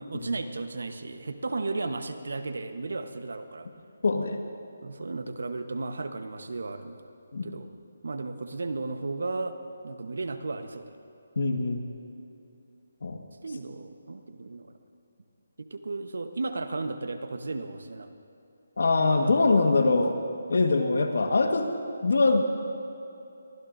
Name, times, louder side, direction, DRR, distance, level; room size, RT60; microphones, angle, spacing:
voice 1, 0.0-3.7 4.8-7.0 7.4-7.7 8.0-9.6 9.8-10.9 13.4-14.7 15.6-18.2 19.2-19.4, right 3 dB, 75° right, 8 dB, 1.1 m, -34 dB
voice 2, 4.0-4.4 7.3-7.5 11.3-11.8 13.0-13.2 18.8-20.2 20.5-21.7 22.0-22.4, left 3 dB, 70° left, 5 dB, 1.5 m, -23 dB
22.5 x 15.5 x 2.7 m, 2.8 s
hypercardioid pair, 165°, 0 cm